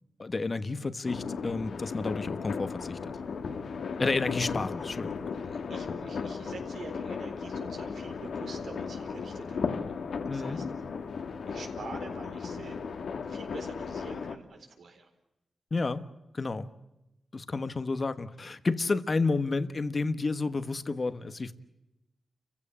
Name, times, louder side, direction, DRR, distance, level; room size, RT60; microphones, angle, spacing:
voice 1, 0.2-3.1 4.0-5.5 10.3-10.6 15.7-16.0 16.3-16.7 17.3-21.5, left 3 dB, 40° left, 1.2 m, -31 dB
sound 1, 1.0-14.4, left 5 dB, 75° left, 1.7 m, -36 dB
voice 2, 3.1-3.5 5.3-9.9 10.3-11.0 11.5-13.0 13.2-15.1, right 4 dB, 80° right, 4.1 m, -47 dB
29.5 x 16.0 x 8.7 m
wide cardioid pair, 90°, 0 cm